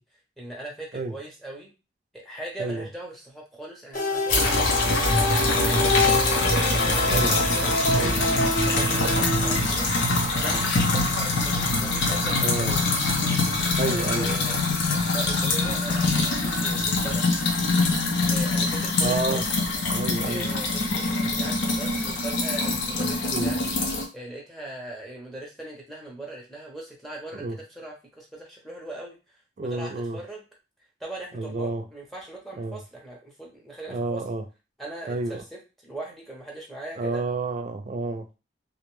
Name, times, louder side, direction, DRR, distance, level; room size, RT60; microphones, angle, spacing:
voice 1, 0.4-1.7 2.1-6.2 6.6-10.1 10.4-12.9 13.9-14.9 15.1-17.4 18.3-19.5 20.2-23.8 24.1-27.4 27.7-29.2 29.6-30.4 31.0-34.2 34.8-37.2, right 2 dB, ahead, -1 dB, 0.6 m, -40 dB
sound 1, 3.9-9.6, left 2 dB, 45° left, 0.6 m, -27 dB
sound 2, 4.3-24.0, left 2 dB, 85° left, 0.6 m, -24 dB
voice 2, 7.9-8.2 12.4-12.7 13.8-14.4 16.8-16.9 19.0-19.5 19.9-20.5 23.3-23.5 27.3-27.6 29.6-30.2 31.3-31.8 32.6-32.8 33.9-34.4 35.1-35.4 37.0-38.3, right 3 dB, 45° right, 6 dB, 0.4 m, -30 dB
2.4 x 2.1 x 3.0 m, 0.30 s
head